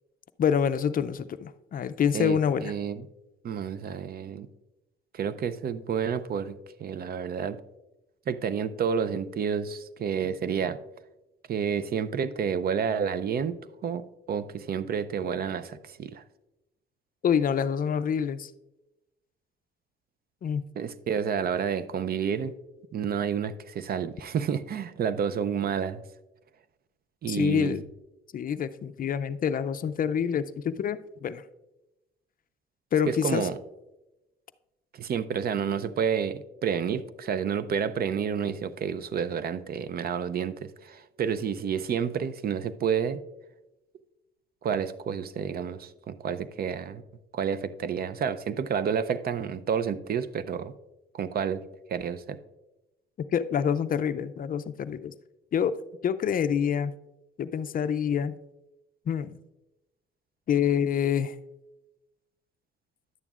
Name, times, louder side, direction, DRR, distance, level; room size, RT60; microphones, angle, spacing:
voice 1, 0.4-2.7 17.2-18.5 20.4-20.6 27.3-27.8 28.3-31.4 32.9-33.5 53.3-55.1 55.5-55.8 56.0-56.9 57.4-58.4 59.1-59.4 60.5-61.3, left 8 dB, 45° left, 13 dB, 0.4 m, -26 dB
voice 2, 2.1-3.1 3.4-4.5 5.1-7.6 8.3-10.8 11.5-13.6 13.8-16.2 20.7-22.5 22.9-26.0 27.2-27.8 33.1-33.6 34.9-43.2 44.6-47.0 47.3-50.7 51.1-51.6 51.9-52.4, right 7 dB, 50° right, 15 dB, 0.5 m, -30 dB
11.0 x 8.9 x 2.4 m, 0.97 s
cardioid pair, 90°, 20 cm